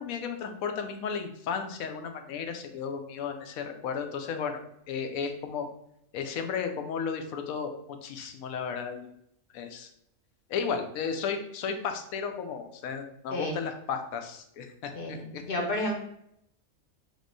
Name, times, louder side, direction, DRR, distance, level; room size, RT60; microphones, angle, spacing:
voice 1, 0.0-4.6 4.9-5.7 6.1-9.1 9.5-9.9 10.5-15.4, left 6 dB, 85° left, 6 dB, 1.1 m, -34 dB
voice 2, 15.0-15.9, left 1 dB, 45° left, 1 dB, 0.9 m, -31 dB
3.6 x 3.0 x 3.9 m, 0.75 s
omnidirectional pair, 1.4 m